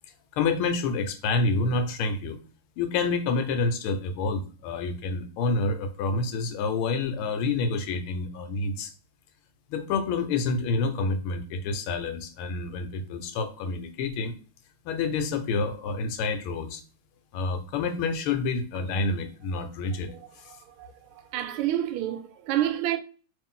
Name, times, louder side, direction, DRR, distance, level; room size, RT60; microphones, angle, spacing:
voice 1, 0.3-2.4 2.8-8.9 9.7-14.3 14.8-16.8 17.3-20.1 20.4-20.5, left 3 dB, 85° left, 1.5 m, -28 dB
voice 2, 20.5-20.9 21.3-23.0, right 12 dB, 80° right, 1.4 m, -28 dB
3.1 x 3.0 x 3.6 m
omnidirectional pair, 2.4 m